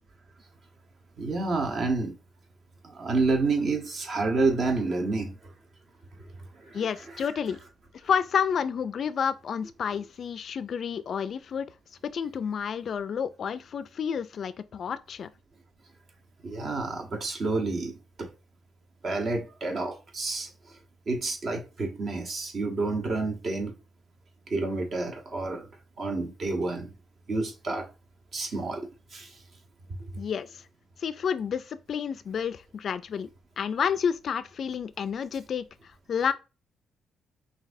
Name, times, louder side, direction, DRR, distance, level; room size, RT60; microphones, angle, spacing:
voice 1, 1.2-2.2 2.8-5.5 6.2-7.3 16.4-18.3 19.0-20.8 21.1-23.8 24.5-25.7 26.0-26.9 27.3-27.9 28.3-29.4, right 3 dB, 50° right, 1.1 m, -29 dB
voice 2, 6.7-7.6 8.0-11.7 12.1-15.3 30.2-30.6 31.0-33.3 33.6-35.7 36.1-36.3, left 7 dB, 55° left, 0.3 m, -30 dB
5.8 x 2.7 x 2.6 m
cardioid pair, 90°, 0 cm